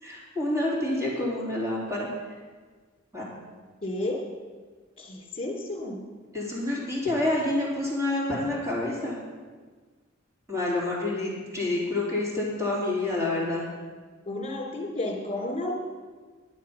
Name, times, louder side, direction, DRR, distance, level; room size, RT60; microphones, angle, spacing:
voice 1, 0.0-2.1 3.1-3.2 6.3-9.2 10.5-13.7, left 2 dB, 15° right, -5 dB, 3.7 m, -28 dB
voice 2, 3.8-4.2 5.0-6.0 14.2-15.7, left 2 dB, 30° left, 0 dB, 3.0 m, -32 dB
11.0 x 10.0 x 5.9 m, 1.5 s
head